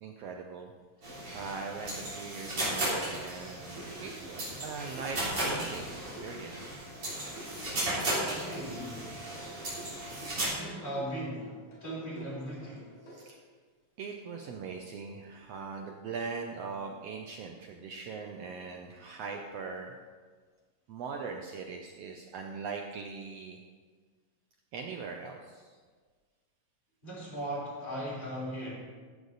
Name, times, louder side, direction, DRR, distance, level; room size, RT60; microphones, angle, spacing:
voice 1, 0.0-0.7 1.3-6.7 13.0-13.4 14.0-19.9 20.9-23.6 24.7-25.7, right 5 dB, 85° right, 2 dB, 1.4 m, -41 dB
sound 1, 1.0-10.5, right 1 dB, 40° right, 4.5 m, -35 dB
sound 2, 3.8-13.2, right 2 dB, 55° left, 5.1 m, -49 dB
voice 2, 8.2-9.1 10.5-12.9 27.0-28.7, equal, 15° left, -6 dB, 3.8 m, -38 dB
15.0 x 8.2 x 4.0 m, 1.5 s
omnidirectional pair, 3.8 m